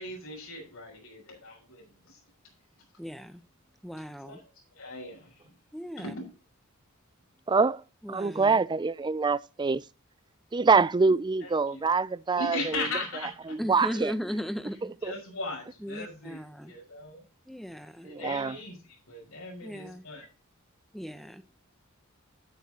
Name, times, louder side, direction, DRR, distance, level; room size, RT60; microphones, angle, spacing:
voice 1, 0.0-2.2 4.3-4.4 4.7-5.5 6.0-6.2 11.4-11.8 12.4-13.5 15.0-17.2 18.0-20.3, left 2 dB, 85° left, 5.7 m, -38 dB
voice 2, 3.0-3.4 3.8-4.4 5.7-6.1 8.0-8.6 10.7-10.9 13.6-14.9 15.8-16.7 17.5-18.1 19.6-20.0 20.9-21.4, equal, ahead, 1.0 m, -37 dB
voice 3, 7.5-7.8 8.1-9.8 10.5-12.8 13.5-14.1 15.1-15.2 18.0-18.6, right 4 dB, 20° right, 0.4 m, -25 dB
12.5 x 9.2 x 2.9 m
head